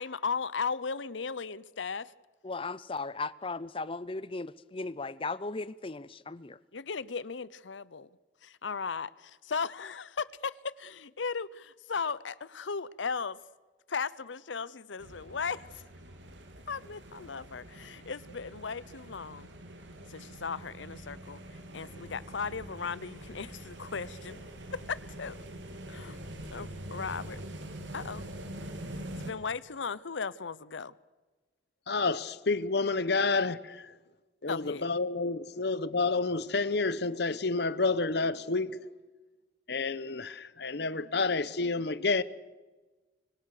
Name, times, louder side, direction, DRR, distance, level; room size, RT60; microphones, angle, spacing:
voice 1, 0.0-2.1 6.7-8.1 8.4-13.4 13.9-15.7 16.7-19.5 20.1-21.4 21.7-24.4 24.7-25.4 25.9-27.4 27.9-28.2 29.2-30.9 34.5-34.9, left 5 dB, 90° left, 0.8 m, -36 dB
voice 2, 2.4-6.6, left 3 dB, 30° left, 0.7 m, -37 dB
sound 1, 15.0-29.3, right 1 dB, 85° right, 3.2 m, -44 dB
voice 3, 31.9-33.9 34.4-38.8 39.7-42.2, left 3 dB, 60° left, 1.0 m, -29 dB
25.0 x 24.5 x 6.7 m
head